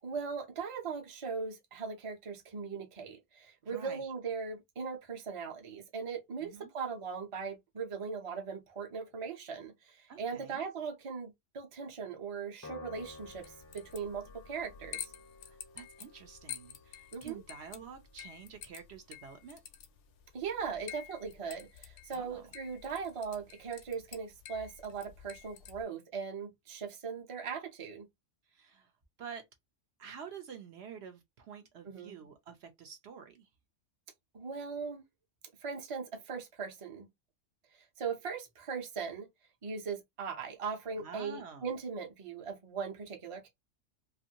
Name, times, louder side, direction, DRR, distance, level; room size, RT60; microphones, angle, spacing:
voice 1, 0.0-15.1 17.1-17.4 20.3-28.0 31.9-32.1 34.3-35.0 35.6-37.1 38.0-39.3 39.6-43.5, right 5 dB, 35° right, 0.6 m, -39 dB
voice 2, 3.6-4.0 6.4-6.7 10.1-10.7 15.4-19.6 22.1-22.4 28.5-28.9 29.2-29.4 30.0-33.5 41.0-41.7, right 7 dB, 70° right, 0.8 m, -49 dB
Piano, 12.6-19.2, left 3 dB, 20° left, 0.4 m, -54 dB
sound 1, 12.9-25.8, left 10 dB, 75° left, 0.9 m, -50 dB
2.6 x 2.5 x 2.7 m
omnidirectional pair, 1.2 m